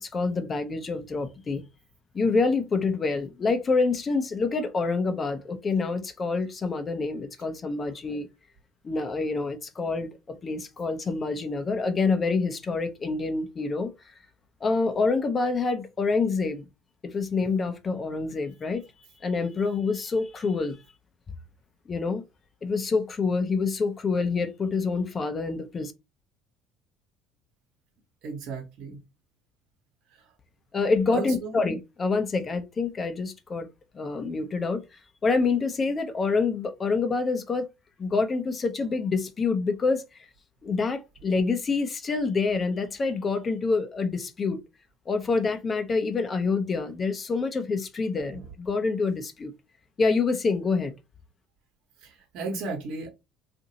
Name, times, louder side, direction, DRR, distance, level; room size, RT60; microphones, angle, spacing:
voice 1, 0.0-1.6 2.1-8.3 8.8-13.9 14.6-16.6 17.0-18.8 19.2-20.8 21.9-22.2 22.6-25.9 30.7-33.7 33.9-34.8 35.2-37.7 38.0-40.0 40.6-44.6 45.1-49.5 50.0-50.9, left 4 dB, 35° left, 0.6 m, -27 dB
voice 2, 28.2-29.0 31.1-31.6 48.2-48.4 52.0-53.1, right 3 dB, 65° right, 1.0 m, -35 dB
2.7 x 2.5 x 2.7 m
supercardioid pair, 80°, 0 cm